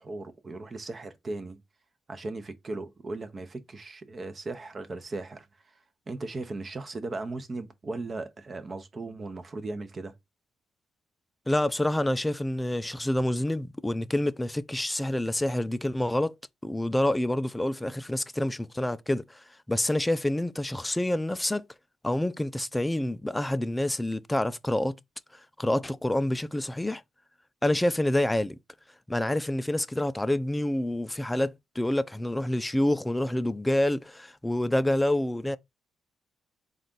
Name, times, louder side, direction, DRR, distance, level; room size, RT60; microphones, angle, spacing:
voice 1, 0.0-1.6 2.1-5.8 6.1-10.1, right 2 dB, 35° right, 0.8 m, -37 dB
voice 2, 11.5-21.6 22.0-25.0 25.3-27.0 27.6-28.6 29.1-35.6, left 1 dB, 10° left, 0.3 m, -27 dB
4.0 x 2.4 x 3.7 m
cardioid pair, 90°, 0 cm